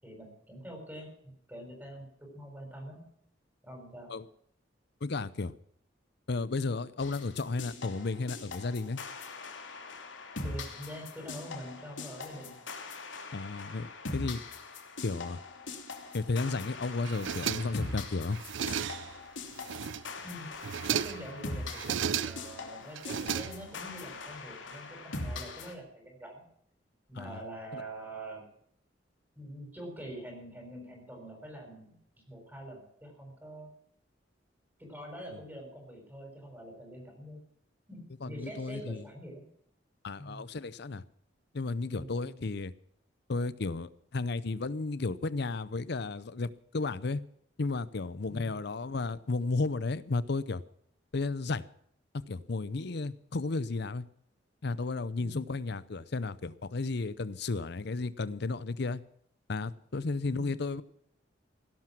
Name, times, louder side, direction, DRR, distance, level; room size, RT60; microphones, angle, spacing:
voice 1, 0.0-1.1 1.5-3.0 3.6-4.1 10.4-12.5 20.2-20.5 20.9-26.5 27.1-28.4 29.4-32.0 32.3-33.7 34.8-37.4 37.9-39.4 40.2-40.4 41.9-42.3 48.3-48.6 55.2-55.5 60.3-60.7, right 1 dB, 10° right, 1 dB, 6.3 m, -45 dB
voice 2, 5.0-5.5 6.3-9.0 13.3-14.4 15.0-15.4 16.1-18.4 27.1-27.4 27.7-27.8 38.2-39.0 40.0-41.0 41.5-42.7 43.3-47.2 47.6-50.6 51.1-51.6 52.1-54.0 54.6-59.0 59.5-60.8, left 3 dB, 60° left, 17 dB, 0.7 m, -33 dB
sound 1, 7.0-25.7, left 3 dB, 85° left, 2.9 m, -42 dB
sound 2, 17.0-17.9 18.3-19.2 19.6-20.2 20.6-21.3 21.7-22.6 23.0-23.9, right 8 dB, 80° right, 0.5 m, -34 dB
17.0 x 12.0 x 6.1 m, 0.67 s
head